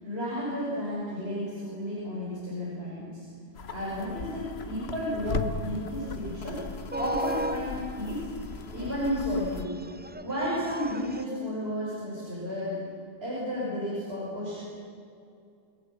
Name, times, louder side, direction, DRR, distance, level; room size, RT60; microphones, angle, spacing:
voice 1, 0.0-3.3 3.7-6.6 7.0-8.3 8.7-9.7 10.2-12.8 13.2-14.6, equal, 80° right, -8 dB, 7.3 m, -32 dB
sound 1, 3.6-9.7, left 5 dB, 85° left, 1.3 m, -38 dB
sound 2, 5.5-11.2, right 1 dB, 15° right, 0.4 m, -37 dB
29.0 x 16.5 x 9.6 m, 2.5 s
omnidirectional pair, 1.0 m